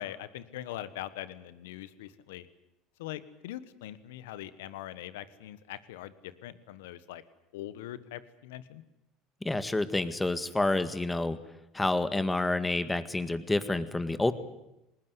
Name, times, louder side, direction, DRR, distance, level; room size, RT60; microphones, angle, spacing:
voice 1, 0.0-2.5 3.0-7.2 7.5-8.8, left 13 dB, 80° left, 15 dB, 1.3 m, -42 dB
voice 2, 9.4-11.4 11.7-14.3, left 2 dB, 10° left, 12 dB, 1.9 m, -28 dB
20.5 x 19.5 x 9.6 m, 0.90 s
hypercardioid pair, 80°, 0 cm